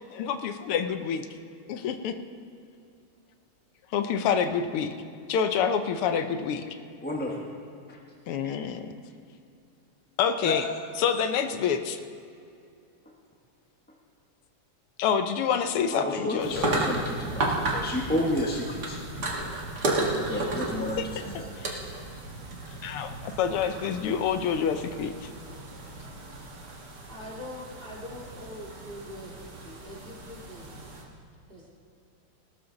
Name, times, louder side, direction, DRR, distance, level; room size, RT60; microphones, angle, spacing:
voice 1, 0.1-1.2 1.7-2.1 3.9-4.9 5.3-6.6 8.3-8.8 10.2-10.7 11.0-12.0 15.0-16.7 22.8-25.1, left 7 dB, 85° left, 9 dB, 1.7 m, -27 dB
voice 2, 7.0-7.4 7.9-8.0 8.4-8.5 10.4-10.6 15.9-19.0 20.3-21.5, left 1 dB, 10° left, -1 dB, 0.6 m, -31 dB
sound 1, 16.4-31.0, right 2 dB, 50° right, 2.2 m, -34 dB
voice 3, 27.1-30.7 31.5-31.7, left 1 dB, 25° right, -4 dB, 2.4 m, -43 dB
18.0 x 13.0 x 3.9 m, 2.5 s
omnidirectional pair, 2.4 m